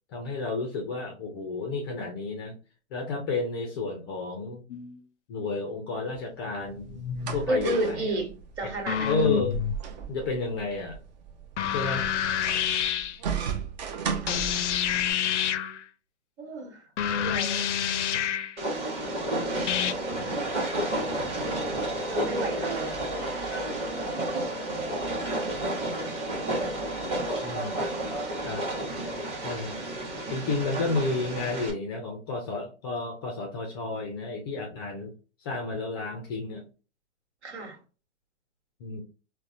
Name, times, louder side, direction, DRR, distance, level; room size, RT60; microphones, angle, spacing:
voice 1, 0.1-2.5 2.9-4.6 5.3-7.0 7.3-8.1 8.6-9.6 10.1-11.0 11.7-12.1 27.4-27.9 28.5-28.6 29.4-29.9 30.3-35.1 35.4-36.6 38.8-39.0, left 3 dB, 20° left, 0.4 m, -31 dB
sound 1, 4.7-5.0 6.2-6.3 6.7-7.5 8.9-9.7 11.6-13.2 14.3-15.8 17.0-18.6 19.7-19.9, left 9 dB, 75° left, 0.5 m, -28 dB
sound 2, 6.6-15.1, right 7 dB, 40° right, 0.5 m, -36 dB
voice 2, 7.5-9.3 14.2-14.5 16.4-17.7 22.0-22.9 37.4-37.8, right 2 dB, 65° right, 1.3 m, -32 dB
Train, 18.6-31.7, right 1 dB, 15° right, 0.9 m, -31 dB
3.8 x 2.1 x 2.5 m
hypercardioid pair, 135°, 36 cm